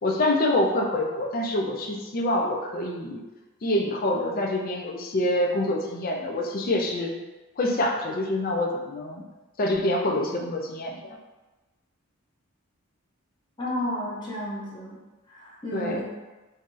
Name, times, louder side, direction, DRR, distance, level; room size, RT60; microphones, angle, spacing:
voice 1, 0.0-3.2 3.6-7.2 7.6-9.2 9.6-11.2 15.7-16.0, left 1 dB, 40° left, 1 dB, 0.4 m, -26 dB
voice 2, 13.6-15.0 15.3-16.0, left 1 dB, 20° left, -6 dB, 0.7 m, -32 dB
2.7 x 2.4 x 3.7 m, 1.1 s
head